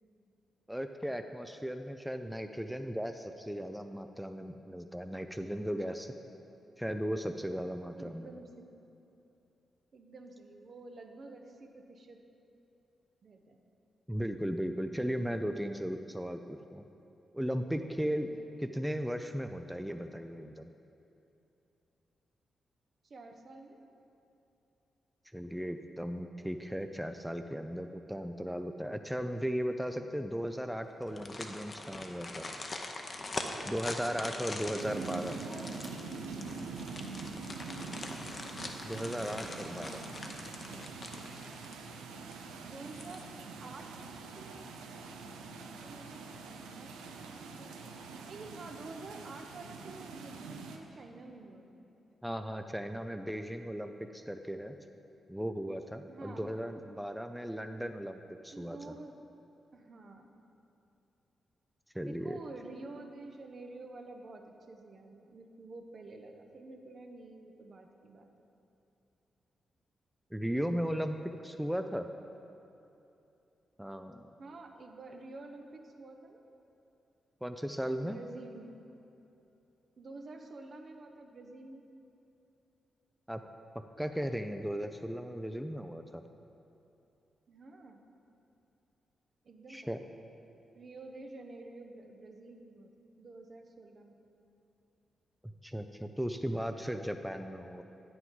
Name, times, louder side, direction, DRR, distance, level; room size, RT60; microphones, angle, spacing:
voice 1, 0.7-6.1 6.8-8.3 14.1-16.8 17.3-20.7 25.3-32.5 33.6-35.4 38.8-40.0 52.2-54.7 55.3-58.8 61.9-62.4 70.3-71.2 71.4-72.1 73.8-74.3 77.4-78.2 83.3-83.4 84.0-86.2 89.7-90.0 95.4-97.8, equal, 5° right, 7 dB, 0.4 m, -36 dB
voice 2, 8.0-8.8 9.9-12.2 13.2-13.6 18.2-18.4 23.0-23.8 35.0-35.7 39.5-40.1 42.6-43.3 43.6-47.8 48.3-51.8 56.1-56.9 58.5-59.2 59.7-60.3 62.0-68.3 74.4-76.4 78.0-78.8 80.0-81.8 87.5-88.0 89.4-89.9 90.7-92.9 93.2-94.2, right 2 dB, 55° right, 4 dB, 0.7 m, -49 dB
sound 1, 31.0-42.0 42.3-42.4 42.8-43.5 43.8-44.0, left 2 dB, 45° left, 0.7 m, -43 dB
sound 2, 34.8-50.8, right 4 dB, 85° right, 0.5 m, -44 dB
9.0 x 5.9 x 3.8 m, 2.9 s
hypercardioid pair, 40°, 0 cm